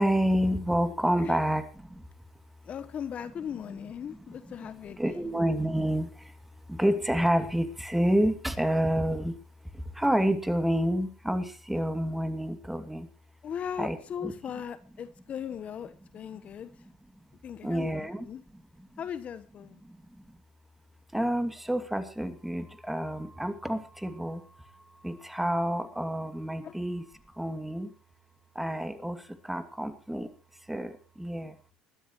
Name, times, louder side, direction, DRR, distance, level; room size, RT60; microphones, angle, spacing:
voice 1, 0.0-2.1 4.1-4.2 4.5-4.7 5.0-6.4 6.7-9.4 9.7-13.1 13.8-14.0 14.2-14.3 16.3-16.4 17.6-18.3 18.5-18.9 19.8-20.4 21.1-27.9 28.5-30.3 30.6-31.6, equal, 5° right, 9 dB, 2.6 m, -29 dB
voice 2, 2.6-5.3 13.4-16.8 17.4-18.4 19.0-19.8 26.6-26.7, left 8 dB, 45° left, 14 dB, 1.1 m, -38 dB
21.5 x 13.0 x 3.1 m, 0.34 s
hypercardioid pair, 70°, 3 cm